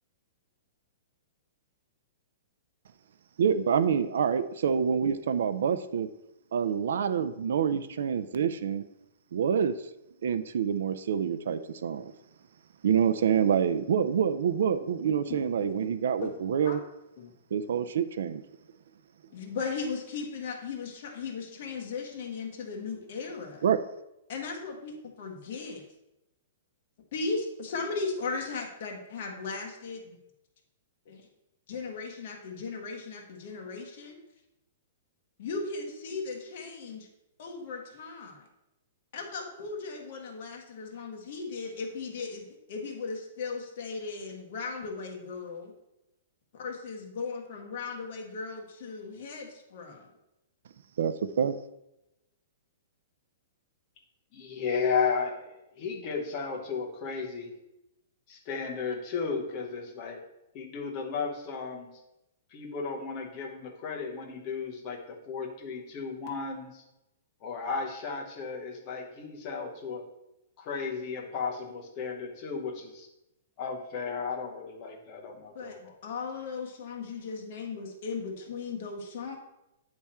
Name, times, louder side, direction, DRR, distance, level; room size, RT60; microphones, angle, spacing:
voice 1, 3.4-6.1 6.5-8.8 9.3-9.7 10.2-12.1 12.8-16.8 17.5-18.4 23.6-23.8 51.0-51.6, right 7 dB, 65° right, 12 dB, 0.4 m, -27 dB
voice 2, 15.3-15.9 16.2-16.3 16.6-16.8 17.2-17.3 19.3-23.7 24.3-25.8 27.1-30.2 31.1-31.3 31.7-34.2 35.4-37.1 37.4-38.4 39.1-45.7 46.5-50.1 75.5-75.8 76.0-79.4, left 4 dB, 40° left, 1 dB, 1.2 m, -37 dB
voice 3, 54.3-57.5 58.3-60.2 60.5-61.9 62.5-66.8 67.4-70.1 70.6-73.1 73.6-75.9, left 5 dB, 25° left, 1 dB, 0.9 m, -34 dB
8.7 x 3.5 x 4.2 m, 0.90 s
hypercardioid pair, 180°, 0 cm